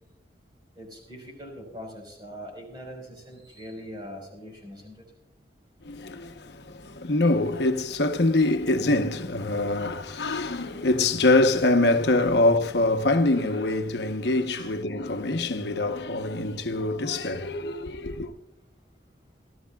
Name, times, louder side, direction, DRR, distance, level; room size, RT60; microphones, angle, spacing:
voice 1, 0.8-5.0 10.1-10.2 12.2-12.3 14.5-14.7, equal, 25° right, 4.4 m, -42 dB
voice 2, 5.8-18.3, left 2 dB, 80° left, 0.9 m, -24 dB
27.0 x 13.0 x 2.3 m
head